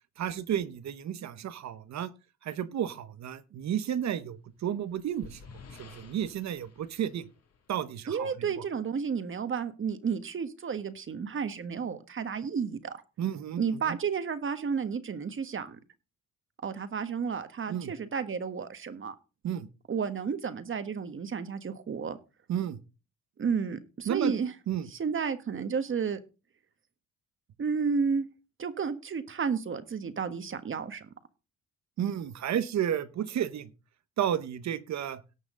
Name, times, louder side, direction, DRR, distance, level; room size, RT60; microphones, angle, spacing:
voice 1, 0.2-2.1 2.4-5.4 5.8-7.3 7.7-8.3 13.2-14.0 17.7-17.9 19.4-19.7 22.5-22.8 24.1-24.3 24.7-24.9 32.0-33.7 34.2-35.2, right 10 dB, 65° right, 14 dB, 1.1 m, -32 dB
sound 1, 4.4-8.1, left 5 dB, 55° left, 2.4 m, -52 dB
voice 2, 8.1-13.0 13.6-15.8 16.6-19.1 19.9-22.2 23.4-24.5 24.9-26.2 27.6-28.2 28.6-31.1, right 6 dB, 40° right, 11 dB, 1.5 m, -32 dB
18.0 x 6.2 x 3.8 m, 0.31 s
cardioid pair, 90°, 30 cm